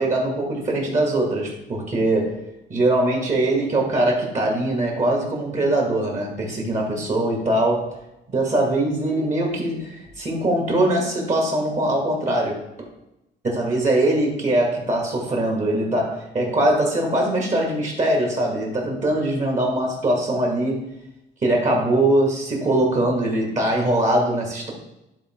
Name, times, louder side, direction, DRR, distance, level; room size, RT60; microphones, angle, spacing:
voice 1, 0.0-2.4 2.7-7.9 8.3-12.9 13.4-20.9 21.4-24.7, right 1 dB, 35° right, 0 dB, 2.5 m, -22 dB
10.5 x 3.6 x 4.7 m, 0.90 s
cardioid pair, 90°, 20 cm